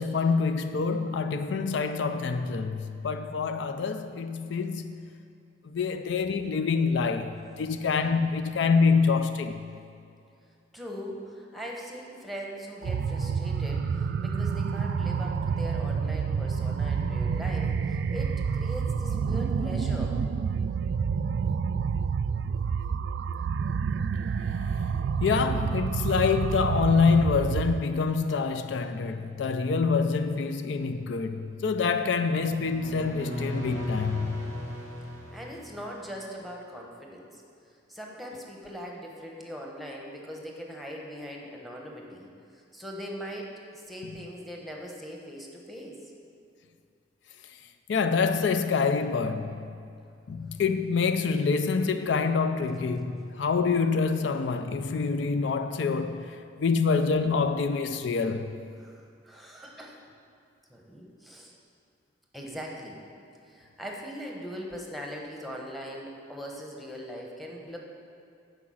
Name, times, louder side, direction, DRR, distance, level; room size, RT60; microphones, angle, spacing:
voice 1, 0.0-5.1 5.7-9.6 25.2-34.4 47.9-49.6 50.3-58.5, left 5 dB, 75° left, 0.4 m, -26 dB
voice 2, 10.7-20.2 35.3-37.4 37.9-42.3 42.7-46.0 58.8-60.0 60.7-61.5 62.3-63.0 63.5-67.8, equal, ahead, 1.0 m, -40 dB
sound 1, 12.8-27.8, right 6 dB, 70° right, 0.3 m, -28 dB
sound 2, 32.3-36.2, left 1 dB, 40° left, 2.1 m, -37 dB
9.9 x 4.8 x 6.2 m
head